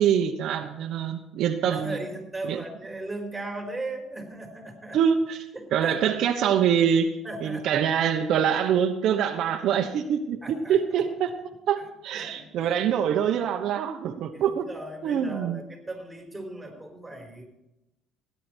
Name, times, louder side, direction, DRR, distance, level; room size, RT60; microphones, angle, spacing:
voice 1, 0.0-2.0 2.4-2.6 4.9-11.4 11.7-14.7 15.0-15.6, right 8 dB, 60° right, 4 dB, 1.1 m, -25 dB
voice 2, 1.7-5.0 5.5-6.0 7.2-7.7 10.4-10.8 12.1-12.5 14.3-17.5, right 2 dB, 5° right, 2 dB, 4.1 m, -37 dB
16.5 x 10.5 x 4.5 m, 0.88 s
cardioid pair, 120°, 0 cm